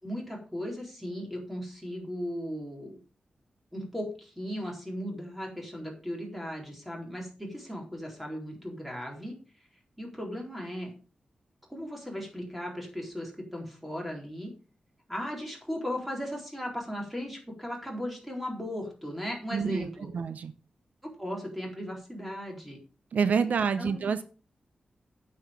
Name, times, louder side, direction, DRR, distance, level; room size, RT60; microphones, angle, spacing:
voice 1, 0.0-3.0 3.7-9.3 10.0-10.9 11.7-14.5 15.1-20.1 21.0-22.8 23.5-24.1, equal, 5° right, 0 dB, 4.1 m, -37 dB
voice 2, 19.5-19.9 20.1-20.5 23.1-24.2, right 6 dB, 75° right, 12 dB, 0.7 m, -27 dB
9.3 x 8.0 x 5.3 m, 0.36 s
wide cardioid pair, 135°, 3 cm